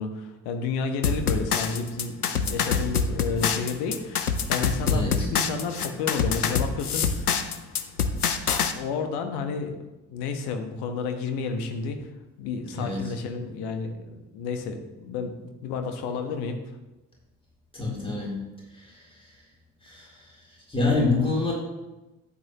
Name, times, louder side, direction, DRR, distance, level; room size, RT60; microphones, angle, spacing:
voice 1, 0.0-7.5 8.1-8.2 8.7-9.8 10.1-12.1 12.4-16.6, left 5 dB, 60° left, 6 dB, 1.3 m, -31 dB
sound 1, 1.0-8.7, left 6 dB, 90° left, 0.5 m, -25 dB
voice 2, 4.9-5.3 12.7-13.0 17.7-18.4 18.7-19.0 19.8-20.1 20.7-21.5, left 3 dB, 10° left, -4 dB, 3.7 m, -26 dB
12.0 x 8.7 x 3.0 m, 1.0 s
figure-of-eight pair, 50°, 44 cm